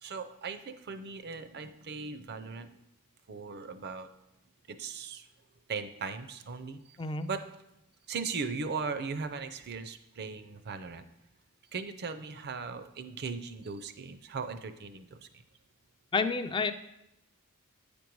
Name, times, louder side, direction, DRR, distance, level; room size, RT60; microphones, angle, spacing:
voice 1, 0.0-2.8 3.3-4.1 4.7-5.2 5.7-7.0 7.3-7.4 8.1-11.0 11.7-15.3, right 4 dB, 50° right, 10 dB, 0.6 m, -38 dB
voice 2, 7.0-7.3 16.1-16.7, left 4 dB, 20° left, 10 dB, 0.4 m, -29 dB
9.0 x 5.2 x 4.6 m, 0.84 s
head